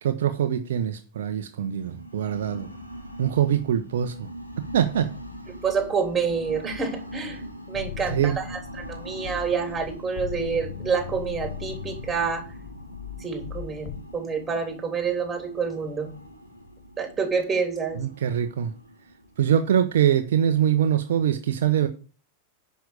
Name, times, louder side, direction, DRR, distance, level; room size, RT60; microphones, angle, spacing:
voice 1, 0.0-2.7 3.2-4.3 4.7-5.1 8.1-8.4 18.0-18.7 19.4-21.9, right 9 dB, 60° right, 0.9 m, -23 dB
sound 1, 1.7-20.4, equal, 90° left, 2.5 m, -42 dB
voice 2, 5.6-7.4 7.7-12.5 13.2-16.1 17.0-18.0, right 5 dB, 15° right, 3.4 m, -28 dB
sound 2, 7.7-14.0, left 8 dB, 40° left, 1.3 m, -38 dB
10.5 x 5.8 x 6.6 m
figure-of-eight pair, 90°, 0 cm